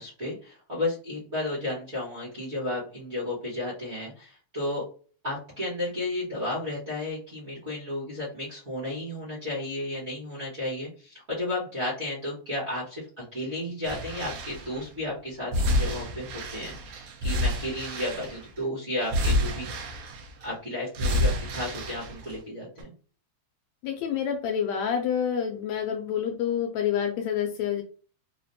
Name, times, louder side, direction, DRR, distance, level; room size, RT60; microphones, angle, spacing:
voice 1, 0.0-4.8 5.2-20.1 20.4-22.9, left 1 dB, 35° right, -8 dB, 1.2 m, -33 dB
sound 1, 13.8-14.8 15.5-18.6 19.0-20.5 20.9-22.4 22.8-22.9, left 1 dB, 80° right, 2.1 m, -29 dB
voice 2, 23.8-27.8, left 8 dB, 75° left, 3 dB, 1.7 m, -28 dB
4.9 x 2.5 x 2.7 m, 0.39 s
omnidirectional pair, 3.4 m